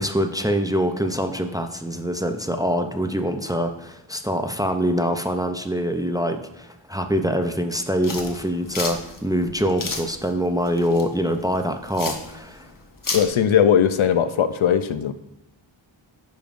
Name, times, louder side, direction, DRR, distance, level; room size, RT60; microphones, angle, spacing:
voice 1, 0.0-12.7, equal, 10° right, 6 dB, 0.4 m, -24 dB
sound 1, 8.0-13.3, left 3 dB, 45° left, 1.0 m, -32 dB
voice 2, 13.1-15.1, left 8 dB, 80° left, 11 dB, 0.6 m, -19 dB
10.0 x 5.2 x 2.5 m, 0.87 s
wide cardioid pair, 65°, 48 cm